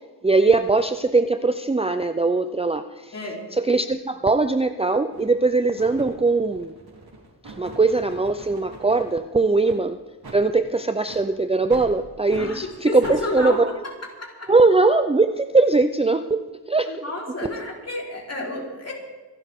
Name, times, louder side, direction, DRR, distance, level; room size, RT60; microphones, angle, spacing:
voice 1, 0.2-3.1 3.5-6.7 7.6-10.0 10.3-13.6 14.5-16.4 16.7-17.0, right 3 dB, 15° right, 9 dB, 0.5 m, -20 dB
voice 2, 3.1-3.4 12.4-13.6 14.2-14.5 16.8-18.9, left 2 dB, 35° left, -2 dB, 4.1 m, -30 dB
sound 1, 4.3-4.4 5.1-5.4 5.8-9.2 9.6-9.8 10.2-10.4 11.0-11.2 11.7-11.9 12.3-12.5 13.0-13.2, right 2 dB, 65° right, 3.8 m, -41 dB
25.5 x 11.5 x 3.7 m, 1.3 s
wide cardioid pair, 85°, 41 cm